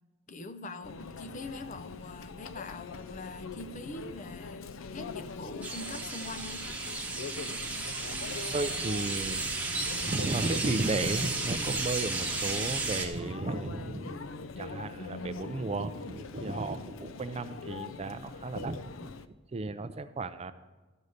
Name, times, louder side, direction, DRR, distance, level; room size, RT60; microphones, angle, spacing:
voice 1, 0.3-4.7 4.9-6.7, left 2 dB, 40° left, 9 dB, 0.6 m, -43 dB
Conversation / Chatter / Crowd, 0.8-19.3, left 4 dB, 85° left, 0.5 m, -42 dB
sound 1, 5.6-13.1, right 3 dB, 10° right, 1.0 m, -34 dB
voice 2, 8.5-9.4 9.7-19.1 19.5-20.5, right 2 dB, 30° right, 11 dB, 0.4 m, -34 dB
13.5 x 5.5 x 6.5 m, 1.2 s
head